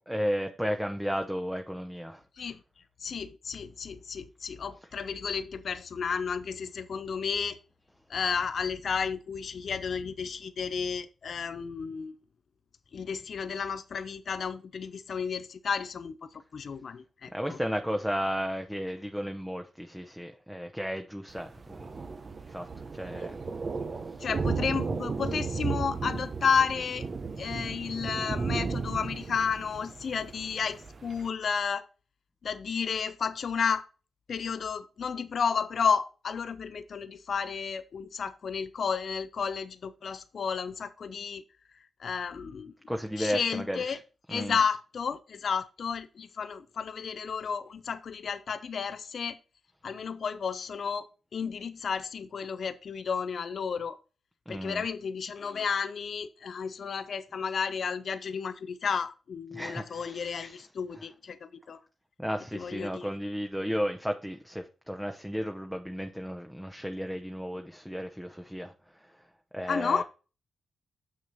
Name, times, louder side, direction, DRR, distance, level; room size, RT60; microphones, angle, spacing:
voice 1, 0.0-2.2 17.3-21.8 22.5-22.7 22.9-23.4 26.5-26.7 42.9-44.0 44.3-44.6 54.5-54.9 59.5-61.0 62.2-68.7 69.5-70.0, equal, 5° right, 1.0 m, -34 dB
voice 2, 3.0-7.6 8.1-12.1 12.9-17.6 24.2-27.1 27.4-31.9 32.4-33.8 34.3-41.4 42.0-42.7 43.2-44.0 44.3-49.4 49.8-51.1 51.3-54.0 54.5-61.8 62.5-63.1 69.7-70.0, left 6 dB, 65° left, 0.7 m, -32 dB
Thunder, 21.3-31.3, right 4 dB, 50° right, 0.9 m, -34 dB
6.8 x 6.4 x 4.1 m
cardioid pair, 70°, 0 cm